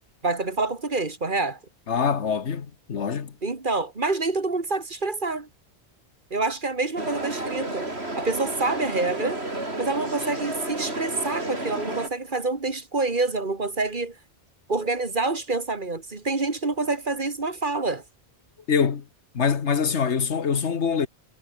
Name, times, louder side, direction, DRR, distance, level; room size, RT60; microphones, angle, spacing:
voice 1, 0.2-1.6 3.4-5.5 6.3-7.9 8.2-9.4 9.8-14.2 14.7-18.0, right 3 dB, 45° right, 2.3 m, -27 dB
voice 2, 1.9-3.4 18.7-19.1 19.3-21.1, left 6 dB, 85° left, 1.7 m, -24 dB
sound 1, 7.0-12.1, right 2 dB, 65° right, 5.6 m, -31 dB
omnidirectional pair, 1.1 m